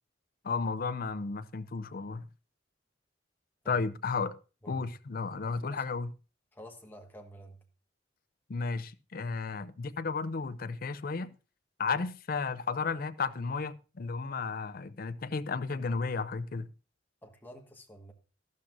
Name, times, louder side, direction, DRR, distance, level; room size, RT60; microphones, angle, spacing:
voice 1, 0.4-2.3 3.7-4.3 4.7-6.1 8.5-11.3 11.8-16.7, left 4 dB, 50° left, 0.5 m, -33 dB
voice 2, 5.4-5.8 6.5-7.6 17.2-18.1, equal, 10° left, 1.4 m, -50 dB
13.0 x 12.0 x 2.6 m
head